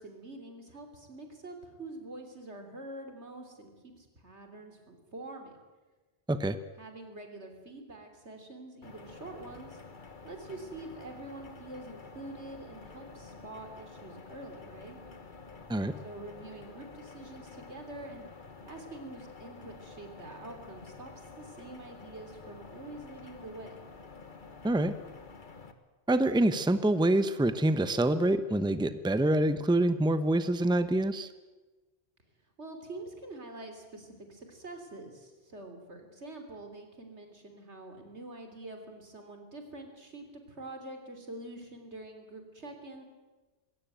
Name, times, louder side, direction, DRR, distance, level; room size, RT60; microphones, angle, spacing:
voice 1, 0.0-5.6 6.8-9.8 10.2-15.0 16.0-18.3 18.6-23.8 32.6-43.0, right 2 dB, 85° right, 5 dB, 3.7 m, -46 dB
Engine Room, 8.8-25.7, left 4 dB, 45° left, 1.6 m, -49 dB
voice 2, 26.1-31.3, right 1 dB, 5° right, 12 dB, 0.8 m, -26 dB
21.0 x 17.5 x 9.2 m, 1.2 s
omnidirectional pair, 1.1 m